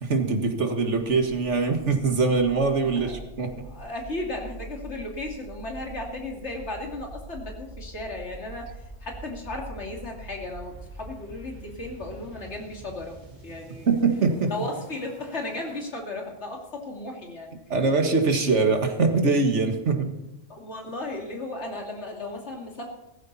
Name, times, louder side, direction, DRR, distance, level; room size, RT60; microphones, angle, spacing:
voice 1, 0.0-3.7 13.9-14.5 17.7-20.1, right 4 dB, 70° right, 5 dB, 2.0 m, -23 dB
sound 1, 1.5-15.8, right 2 dB, 20° right, 4.5 m, -44 dB
voice 2, 2.8-3.2 3.6-13.9 14.5-17.5 20.5-22.9, left 2 dB, 65° left, 0 dB, 3.1 m, -35 dB
16.5 x 14.0 x 4.2 m, 0.94 s
omnidirectional pair, 1.3 m